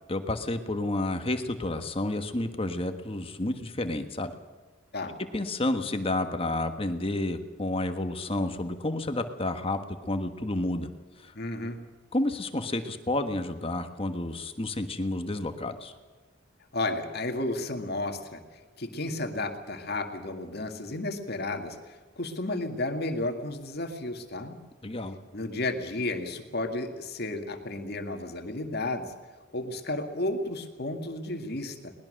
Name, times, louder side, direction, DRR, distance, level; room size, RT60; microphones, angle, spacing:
voice 1, 0.1-4.3 5.3-9.8 10.1-10.9 11.2-11.3 12.1-15.9 24.8-25.2, left 2 dB, 30° left, 7 dB, 1.4 m, -30 dB
voice 2, 11.3-11.9 16.7-18.4 18.8-24.6 25.3-29.1 29.5-31.9, left 2 dB, 55° left, 5 dB, 2.0 m, -33 dB
22.5 x 19.5 x 6.5 m, 1.4 s
head